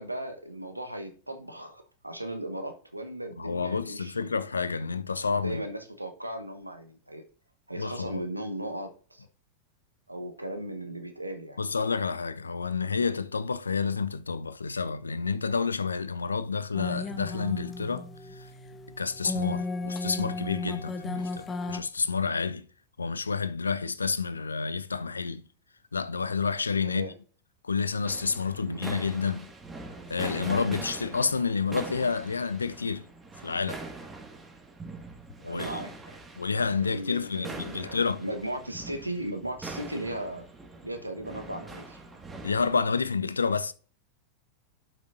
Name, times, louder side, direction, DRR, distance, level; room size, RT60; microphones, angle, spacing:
voice 1, 0.0-4.3 4.6-4.9 5.4-7.2 7.7-9.3 10.1-11.6 26.8-27.1 28.6-28.8 35.4-36.2 36.8-40.5 40.8-42.0, right 1 dB, 85° right, 1.1 m, -37 dB
voice 2, 3.4-5.6 7.8-8.2 11.6-18.5 19.0-22.7 23.0-25.4 25.9-27.0 27.6-29.5 30.1-33.0 33.4-33.8 35.4-35.8 36.4-38.2 42.4-43.7, left 5 dB, 75° left, 0.4 m, -29 dB
sound 1, 16.7-21.8, left 3 dB, 20° left, 1.1 m, -35 dB
sound 2, 28.0-42.8, right 3 dB, 15° right, 1.9 m, -42 dB
11.5 x 6.0 x 2.6 m
figure-of-eight pair, 90°, 0 cm